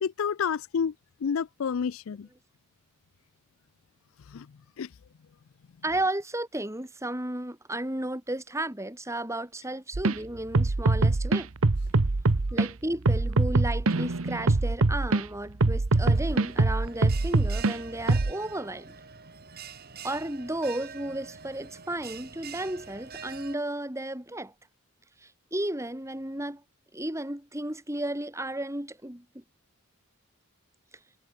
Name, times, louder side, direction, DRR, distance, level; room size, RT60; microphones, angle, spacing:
voice 1, 0.0-0.9 1.2-2.3 4.3-4.5 4.8-4.9, left 6 dB, 65° left, 0.4 m, -29 dB
voice 2, 5.8-11.5 12.5-18.9 20.0-24.5 25.2-26.6 26.9-29.2, right 1 dB, 15° right, 3.3 m, -33 dB
sound 1, 9.9-10.2 10.5-12.7 13.1-15.2 15.6-17.7 18.1-18.3, right 2 dB, 70° right, 1.0 m, -23 dB
Bell, 16.0-23.5, right 6 dB, 45° right, 3.5 m, -45 dB
head